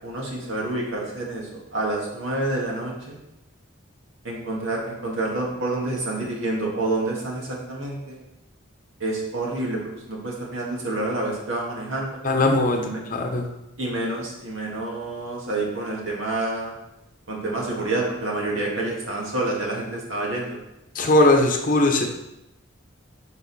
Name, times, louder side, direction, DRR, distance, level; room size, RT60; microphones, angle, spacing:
voice 1, 0.0-3.2 4.2-8.2 9.0-12.2 12.7-13.0 13.8-16.7 17.3-20.6, right 2 dB, 75° right, -2 dB, 1.8 m, -28 dB
voice 2, 12.2-13.5 20.9-22.0, left 2 dB, 40° left, 3 dB, 0.8 m, -19 dB
6.4 x 5.4 x 4.1 m, 0.91 s
head